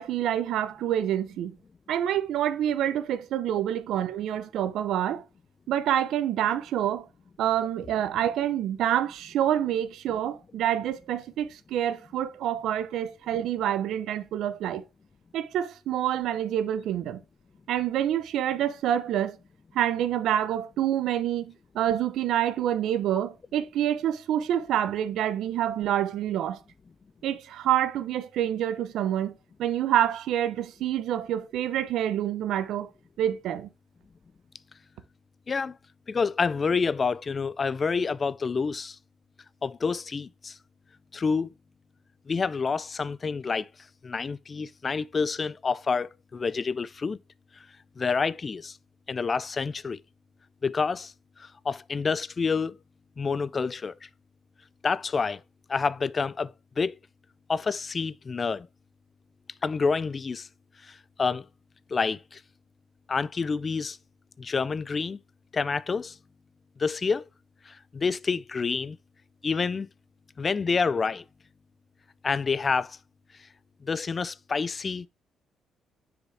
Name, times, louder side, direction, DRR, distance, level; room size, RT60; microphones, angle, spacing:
voice 1, 0.0-1.5 1.9-5.2 5.7-7.1 7.4-14.9 15.3-17.2 17.7-19.4 19.7-26.6 27.2-29.3 29.6-32.9 33.2-33.7, right 11 dB, 80° right, 0.6 m, -27 dB
voice 2, 36.1-39.0 39.6-40.6 41.1-41.5 42.3-43.7 44.0-47.2 48.0-48.8 49.1-50.0 50.6-51.1 51.4-52.8 53.2-53.9 54.8-55.4 55.7-56.5 56.8-57.0 57.5-58.7 59.6-60.5 60.9-61.4 61.9-62.4 63.1-64.0 64.4-65.2 65.5-66.2 66.8-67.2 67.7-69.0 69.4-69.9 70.4-71.2 72.2-73.0 73.8-75.1, left 5 dB, 35° left, 0.3 m, -28 dB
6.4 x 4.9 x 3.3 m
cardioid pair, 90°, 0 cm